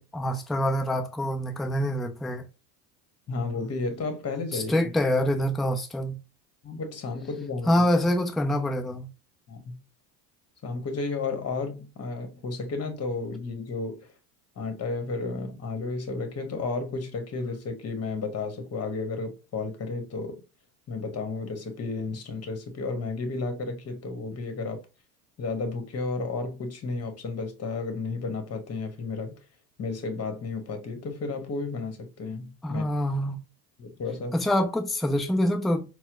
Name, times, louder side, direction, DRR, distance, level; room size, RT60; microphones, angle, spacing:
voice 1, 0.0-2.4 4.5-6.1 7.7-9.1 32.6-33.4 34.3-35.9, equal, ahead, 0.3 m, -25 dB
voice 2, 3.3-4.9 6.6-7.9 9.5-9.7 10.6-14.1 14.6-20.4 20.9-24.8 25.4-29.3 29.8-32.8 33.8-34.4, left 3 dB, 35° left, 1.1 m, -32 dB
4.2 x 2.1 x 2.4 m
supercardioid pair, 85°, 46 cm